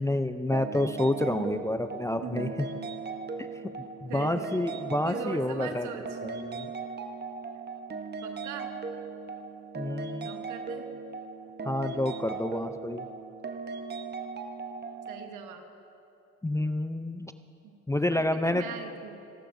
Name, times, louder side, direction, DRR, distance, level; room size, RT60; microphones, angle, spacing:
voice 1, 0.0-2.5 4.0-5.9 6.2-6.7 9.7-10.3 11.7-13.1 16.4-17.3 17.9-18.6, left 1 dB, 10° left, 9 dB, 0.4 m, -29 dB
sound 1, 0.5-15.3, right 4 dB, 35° right, 0.9 m, -38 dB
voice 2, 1.1-1.6 2.1-2.8 4.1-4.7 5.0-6.4 8.2-8.7 10.2-10.9 15.1-15.6 17.6-17.8 18.1-19.2, right 7 dB, 90° right, 5 dB, 1.2 m, -41 dB
28.5 x 11.5 x 2.6 m, 2.9 s
cardioid pair, 90°, 30 cm